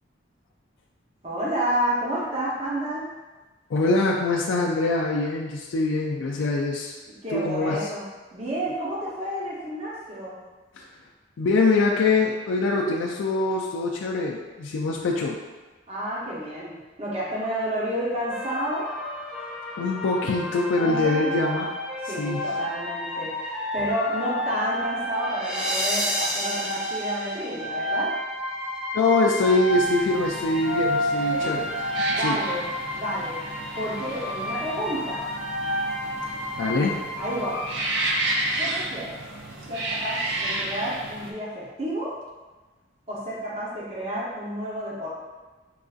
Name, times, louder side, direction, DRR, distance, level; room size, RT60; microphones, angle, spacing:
voice 1, 1.2-3.0 7.2-8.1 8.3-10.4 15.9-18.9 20.8-21.5 22.0-28.1 31.3-31.5 32.1-32.6 32.9-33.3 33.7-35.2 37.2-37.6 38.6-39.2 39.7-42.1 43.1-45.1, right 1 dB, 35° right, -6 dB, 0.8 m, -30 dB
voice 2, 3.7-6.9 7.3-7.9 10.8-10.9 11.4-15.4 19.8-21.7 22.0-22.5 28.9-31.7 32.2-32.4 36.6-37.0, left 3 dB, 80° left, -2 dB, 0.4 m, -24 dB
sound 1, 18.3-37.7, equal, 5° right, 0.5 m, -30 dB
sound 2, 29.7-41.3, right 2 dB, 70° right, 0.5 m, -32 dB
4.6 x 2.5 x 2.4 m, 1.3 s
head